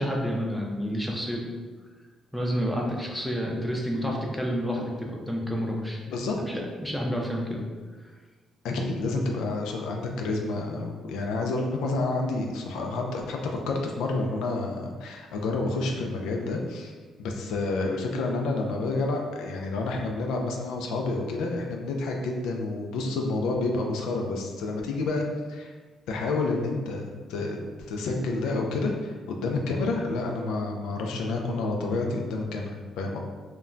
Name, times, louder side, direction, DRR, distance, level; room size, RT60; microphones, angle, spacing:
voice 1, 0.0-1.5 2.3-6.0 6.5-7.6 9.0-9.2, equal, ahead, -1 dB, 0.5 m, -29 dB
voice 2, 8.6-25.7 26.1-33.2, left 3 dB, 90° left, 2 dB, 0.3 m, -29 dB
2.2 x 2.1 x 3.7 m, 1.4 s
cardioid pair, 90°, 0 cm